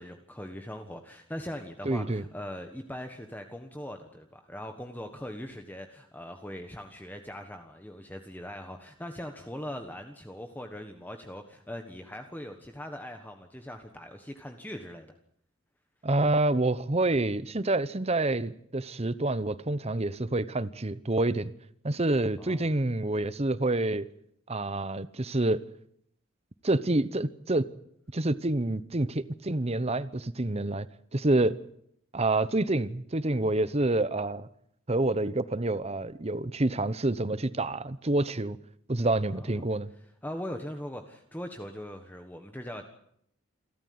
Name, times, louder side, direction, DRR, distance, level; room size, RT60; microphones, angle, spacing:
voice 1, 0.0-15.1 22.4-22.7 39.3-39.6 40.2-42.9, equal, 10° left, 1.4 m, -41 dB
voice 2, 1.8-2.2 16.0-21.5 21.8-24.1 24.5-25.6 26.6-27.6 28.1-30.9 31.1-31.6 32.1-34.5 34.9-38.6 38.9-39.9, right 2 dB, 30° right, 0.9 m, -27 dB
28.0 x 13.5 x 9.6 m
head